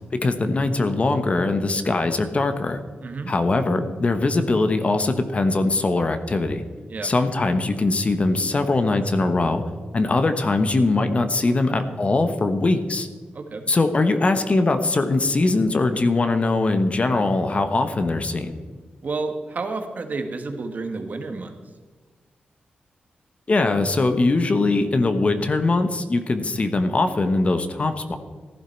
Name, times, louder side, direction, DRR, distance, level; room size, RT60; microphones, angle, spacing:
voice 1, 0.1-2.8 3.3-6.6 7.0-9.6 9.9-13.1 13.7-18.5 23.5-28.2, left 2 dB, 40° left, 8 dB, 1.1 m, -21 dB
voice 2, 13.3-13.7 19.0-21.6, right 3 dB, 55° right, 6 dB, 1.5 m, -30 dB
15.0 x 11.5 x 4.5 m, 1.5 s
wide cardioid pair, 95°, 3 cm